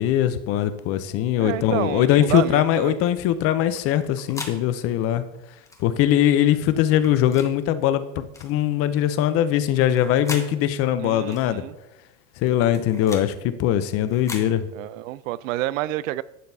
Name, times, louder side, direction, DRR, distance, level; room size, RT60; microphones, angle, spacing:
voice 1, 0.0-5.2 5.8-11.6 12.4-14.7, left 11 dB, 35° left, 12 dB, 0.6 m, -21 dB
voice 2, 1.4-3.0 11.0-11.8 14.7-16.2, right 15 dB, 75° right, 19 dB, 0.5 m, -29 dB
sound 1, 2.2-2.5 3.8-4.6 5.6-5.8 6.9-7.5 8.3-8.5 9.8-10.5 11.3-11.5 12.5-13.3 14.1-14.5, left 3 dB, 10° left, 0.9 m, -38 dB
11.5 x 7.5 x 2.7 m, 0.91 s
supercardioid pair, 140°, 40 cm